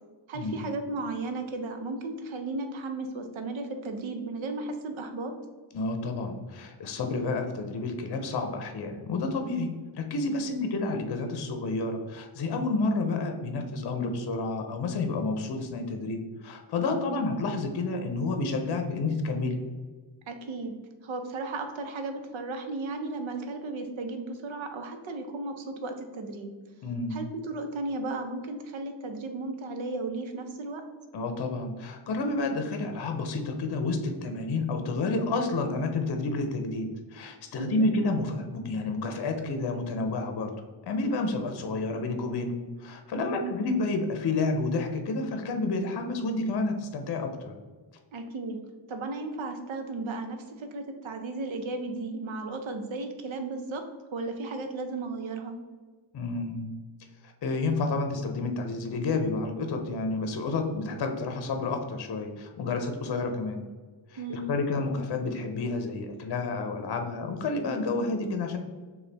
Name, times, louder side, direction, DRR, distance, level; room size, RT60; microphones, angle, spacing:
voice 1, 0.3-5.3 10.4-10.6 16.9-17.2 20.3-20.7 21.0-26.5 27.1-30.9 37.6-37.9 43.2-43.5 48.1-48.6 48.9-55.6 64.2-64.5, right 3 dB, 75° right, 6 dB, 0.8 m, -35 dB
voice 2, 5.7-19.6 26.8-27.2 31.1-40.5 40.8-47.5 56.1-56.7 57.4-63.6 64.1-68.6, left 3 dB, 55° left, 5 dB, 0.7 m, -30 dB
6.5 x 2.3 x 3.4 m, 1.4 s
wide cardioid pair, 110°, 47 cm